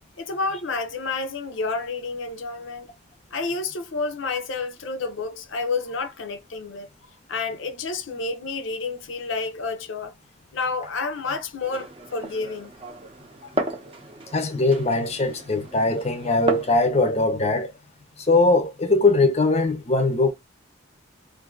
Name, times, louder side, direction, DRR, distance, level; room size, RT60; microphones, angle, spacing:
voice 1, 0.2-2.9 3.3-6.9 7.3-10.1 10.5-12.7 13.4-13.5, left 3 dB, 70° left, 0.7 m, -30 dB
Glass, 11.6-16.8, right 1 dB, 25° right, 0.6 m, -34 dB
voice 2, 14.3-17.7 18.3-20.3, left 2 dB, 30° left, 0.6 m, -21 dB
2.6 x 2.6 x 3.5 m
head